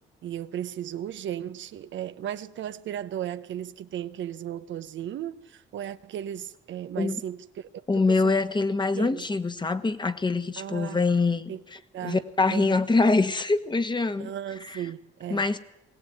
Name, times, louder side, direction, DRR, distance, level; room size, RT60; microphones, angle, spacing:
voice 1, 0.2-7.7 7.9-8.4 8.9-9.3 10.6-11.0 11.5-11.6 11.9-12.2 12.5-12.7 14.2-15.5, right 10 dB, 70° right, 0.9 m, -35 dB
voice 2, 7.9-11.5 12.0-14.3 14.6-14.8 15.3-15.6, left 3 dB, 20° left, 1.4 m, -24 dB
21.0 x 16.5 x 9.4 m
cardioid pair, 90°, 20 cm